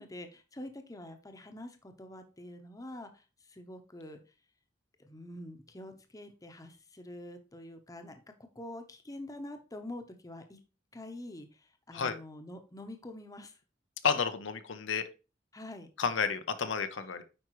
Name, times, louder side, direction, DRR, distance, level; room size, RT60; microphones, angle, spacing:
voice 1, 0.0-4.2 5.0-8.1 8.5-10.6 10.9-13.6 15.5-15.9, left 1 dB, 20° left, 6 dB, 0.9 m, -46 dB
voice 2, 14.0-15.1 16.0-17.2, left 6 dB, 85° left, 9 dB, 0.7 m, -31 dB
9.0 x 4.9 x 3.1 m, 0.32 s
head